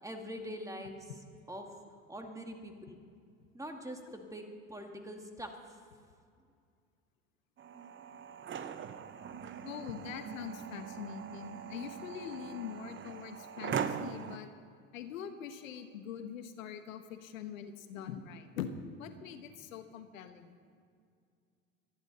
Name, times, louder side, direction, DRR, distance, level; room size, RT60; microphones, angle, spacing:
voice 1, 0.0-1.1 1.5-1.8 2.1-3.0 3.5-5.8, equal, 10° right, 3 dB, 2.3 m, -44 dB
sound 1, 7.6-14.4, right 7 dB, 30° right, 0.8 m, -41 dB
voice 2, 9.6-14.5 14.9-18.7 19.0-20.6, left 8 dB, 80° left, 9 dB, 1.1 m, -43 dB
25.5 x 10.5 x 4.2 m, 2.3 s
hypercardioid pair, 75°, 40 cm